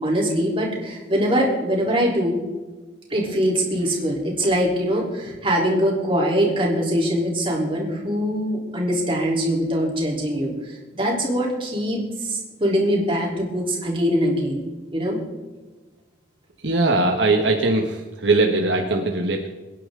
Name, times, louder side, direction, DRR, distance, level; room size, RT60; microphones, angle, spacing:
voice 1, 0.0-2.4 3.1-10.5 11.0-14.6 14.9-15.2, equal, 30° right, -2 dB, 3.7 m, -22 dB
voice 2, 16.6-19.5, right 2 dB, 75° right, 2 dB, 1.4 m, -20 dB
23.0 x 10.0 x 3.8 m, 1.2 s
head